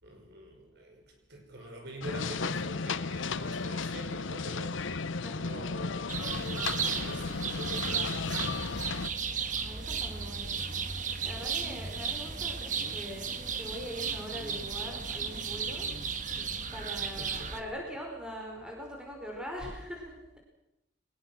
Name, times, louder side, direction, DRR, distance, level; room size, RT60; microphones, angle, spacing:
voice 1, 0.0-4.8 5.2-8.6 17.0-17.7, equal, 55° right, 2 dB, 5.7 m, -45 dB
sound 1, 2.0-9.1, left 4 dB, 75° left, 0.8 m, -34 dB
sound 2, 6.1-17.6, right 6 dB, 40° right, 1.6 m, -35 dB
voice 2, 9.6-10.6 11.2-15.9 16.7-20.4, equal, 5° right, 0 dB, 5.0 m, -42 dB
23.0 x 20.5 x 6.3 m, 0.88 s
head